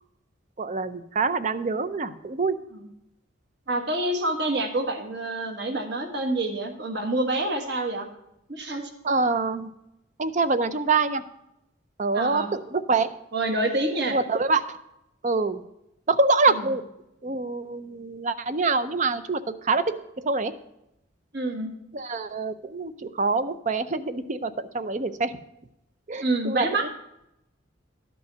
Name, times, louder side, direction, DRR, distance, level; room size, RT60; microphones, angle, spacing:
voice 1, 0.6-2.6 9.0-9.7 10.2-11.2 12.0-13.1 14.1-14.8 15.2-15.6 16.1-16.8 17.2-19.9 20.2-20.5 21.9-25.4 26.1-26.9, right 3 dB, 35° right, 12 dB, 0.5 m, -25 dB
voice 2, 3.7-8.1 8.5-8.9 12.1-12.5 13.3-14.2 16.5-16.6 21.3-21.7 26.2-26.9, right 2 dB, 55° right, 4 dB, 1.4 m, -27 dB
12.0 x 5.4 x 6.6 m, 0.84 s
head